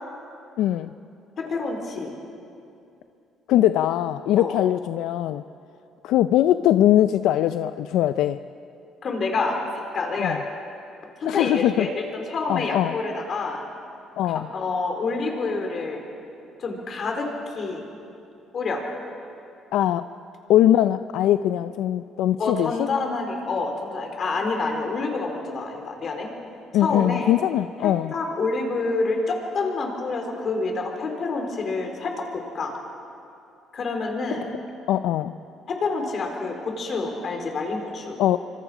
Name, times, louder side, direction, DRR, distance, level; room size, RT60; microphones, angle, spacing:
voice 1, 0.6-0.9 3.5-5.4 6.0-8.4 10.2-10.4 11.3-11.9 12.5-12.9 14.2-14.5 19.7-20.1 20.5-22.7 26.7-28.1 34.9-35.3 38.2-38.4, left 12 dB, 80° left, 11 dB, 0.4 m, -21 dB
voice 2, 1.4-2.1 4.4-4.6 9.0-10.4 11.2-13.6 14.2-16.0 16.6-17.9 18.5-18.8 22.4-26.3 26.8-27.4 27.8-32.7 33.7-34.5 35.7-38.2, left 3 dB, 45° left, 2 dB, 4.0 m, -28 dB
26.0 x 25.5 x 5.0 m, 2.6 s
cardioid pair, 115°, 0 cm